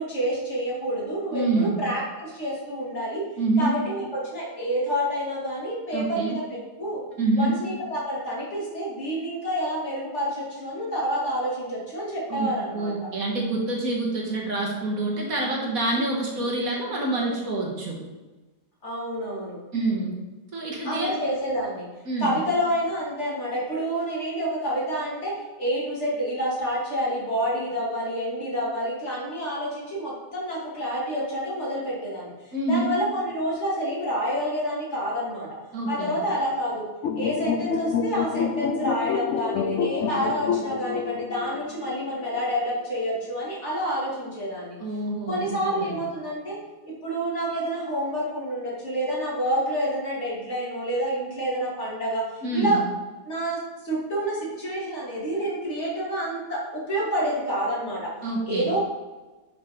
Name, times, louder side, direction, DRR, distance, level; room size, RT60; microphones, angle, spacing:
voice 1, 0.0-3.2 3.6-7.0 7.4-13.1 16.4-16.5 18.8-19.6 20.8-21.9 22.2-35.5 35.9-36.9 37.2-44.8 45.3-46.6 46.8-52.2 52.5-52.8 53.2-58.1 58.4-58.8, equal, 45° left, -6 dB, 3.1 m, -28 dB
voice 2, 1.3-1.8 3.4-3.8 5.9-6.4 7.2-7.6 12.3-18.0 19.7-20.1 20.5-21.1 22.1-22.4 32.5-33.0 35.7-36.2 44.8-46.0 52.4-52.8 58.2-58.6, right 2 dB, 60° right, -2 dB, 2.2 m, -26 dB
sound 1, 37.0-42.4, left 6 dB, 60° left, 0.9 m, -28 dB
10.5 x 6.3 x 3.8 m, 1.2 s
omnidirectional pair, 1.7 m